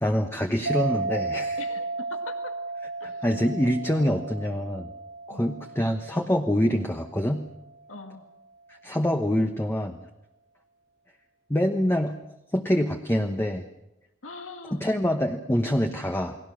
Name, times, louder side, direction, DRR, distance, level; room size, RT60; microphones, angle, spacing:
voice 1, 0.0-1.6 3.0-4.9 5.3-7.4 8.8-10.0 11.5-12.1 12.5-13.6 14.7-16.4, equal, 10° left, 4 dB, 1.1 m, -25 dB
sound 1, 0.6-7.7, right 3 dB, 85° right, 4.3 m, -34 dB
voice 2, 1.6-2.5 3.0-3.2 5.3-5.5 7.9-8.2 14.2-14.8, left 3 dB, 90° left, 5 dB, 1.9 m, -42 dB
29.5 x 20.5 x 6.3 m, 0.89 s
head